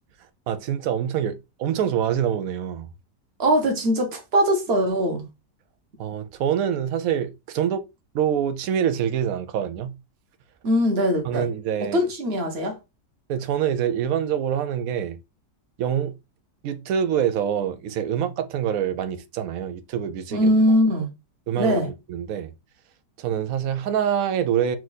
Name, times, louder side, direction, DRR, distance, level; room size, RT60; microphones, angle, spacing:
voice 1, 0.5-2.9 6.0-7.8 8.1-9.9 11.2-12.0 13.3-15.2 15.8-16.1 16.6-20.5 21.5-22.5 23.2-24.8, right 9 dB, 65° right, 0.9 m, -25 dB
voice 2, 3.4-5.3 10.6-11.5 11.8-12.8 20.3-21.1 21.6-21.9, equal, 40° right, 1.2 m, -21 dB
4.5 x 2.6 x 4.0 m
omnidirectional pair, 1.9 m